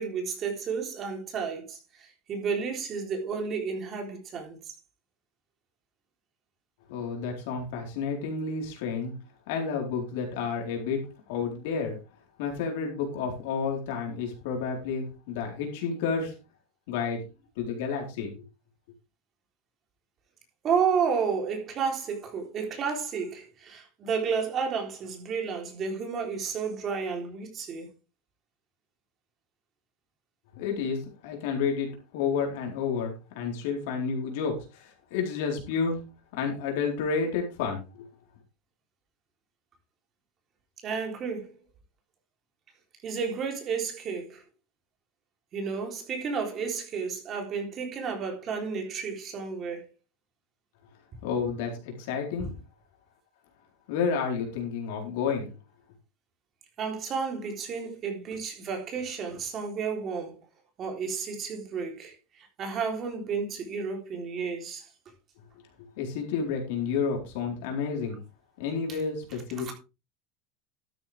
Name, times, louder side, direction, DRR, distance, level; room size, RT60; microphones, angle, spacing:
voice 1, 0.0-4.7 20.6-27.9 40.8-41.5 43.0-44.4 45.5-49.9 52.4-52.5 56.8-60.4 60.8-64.9 68.9-69.0 69.6-69.7, right 6 dB, 30° right, 3.6 m, -32 dB
voice 2, 6.9-9.1 9.5-11.0 11.3-12.0 12.4-16.3 16.9-17.2 17.6-18.3 30.5-36.0 36.3-38.1 51.2-52.5 53.9-55.5 66.0-68.2 68.6-69.7, left 5 dB, 70° left, 4.2 m, -30 dB
12.5 x 9.5 x 3.5 m
supercardioid pair, 160°, 0 cm